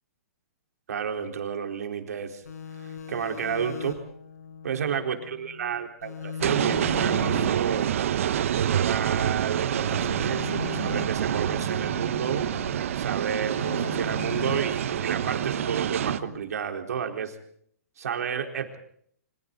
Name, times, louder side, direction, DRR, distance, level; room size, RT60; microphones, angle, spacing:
voice 1, 0.9-2.4 2.8-4.0 4.6-7.9 8.5-12.5 12.9-17.4 18.0-18.8, right 7 dB, 75° right, 5 dB, 4.1 m, -31 dB
sound 1, 2.5-5.7 6.0-9.3 9.6-12.8 13.1-16.4, left 6 dB, 90° left, 6.6 m, -39 dB
sound 2, 6.4-16.2, right 10 dB, 60° right, 1.2 m, -27 dB
28.5 x 25.0 x 4.0 m, 0.63 s
hypercardioid pair, 170°, 8 cm